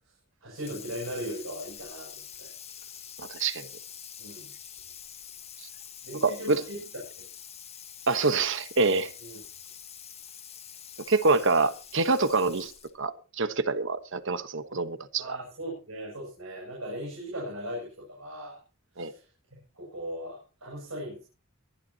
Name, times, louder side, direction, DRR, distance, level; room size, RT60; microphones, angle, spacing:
voice 1, 0.4-2.5 4.2-4.5 6.0-6.8 7.2-7.3 9.2-9.4 15.2-18.6 18.9-19.2 19.5-21.2, equal, 85° right, 7.5 m, -38 dB
Water tap faucet / Sink (filling or washing), 0.5-13.0, left 8 dB, 30° left, 1.7 m, -46 dB
voice 2, 3.2-3.7 6.2-6.6 8.1-9.1 11.1-12.7 13.0-15.4 19.0-19.1, right 3 dB, 60° right, 1.3 m, -26 dB
23.0 x 12.0 x 3.0 m
head